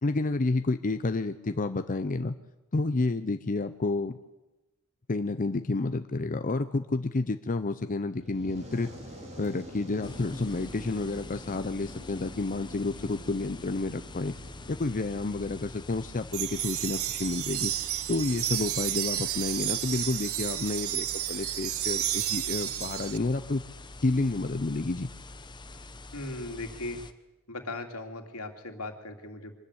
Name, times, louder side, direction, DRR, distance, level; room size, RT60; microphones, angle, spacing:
voice 1, 0.0-2.4 2.7-4.2 5.1-8.9 9.4-14.3 14.7-17.7 18.1-23.6 24.0-25.1, left 3 dB, 35° left, 9 dB, 0.6 m, -30 dB
Fire, 8.0-15.7, equal, 30° right, 4.8 m, -47 dB
sound 1, 10.0-27.1, left 2 dB, 20° left, 1.0 m, -46 dB
sound 2, 16.3-23.2, right 13 dB, 70° right, 0.8 m, -31 dB
voice 2, 26.1-27.0 27.5-29.5, left 2 dB, 80° left, 5 dB, 2.7 m, -38 dB
24.5 x 13.5 x 9.7 m, 1.1 s
head